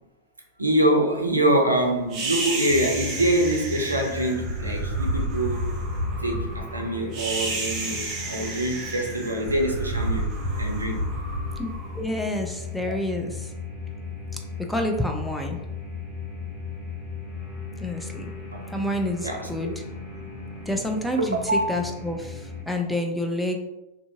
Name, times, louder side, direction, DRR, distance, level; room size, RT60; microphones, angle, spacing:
voice 1, 0.6-5.7 6.2-10.3 10.6-11.0 12.9-13.0 18.5-18.7 19.2-19.5 21.5-21.8, right 1 dB, 80° right, 2 dB, 0.4 m, -25 dB
sound 1, 2.1-12.5, right 2 dB, 35° right, 0.6 m, -30 dB
sound 2, 2.6-22.6, left 4 dB, 55° left, 0.9 m, -37 dB
voice 2, 11.6-13.5 14.7-15.6 17.8-18.3 18.7-19.7 20.7-23.6, left 1 dB, ahead, 2 dB, 0.3 m, -28 dB
2.7 x 2.5 x 2.4 m, 0.96 s
figure-of-eight pair, 90°, 0 cm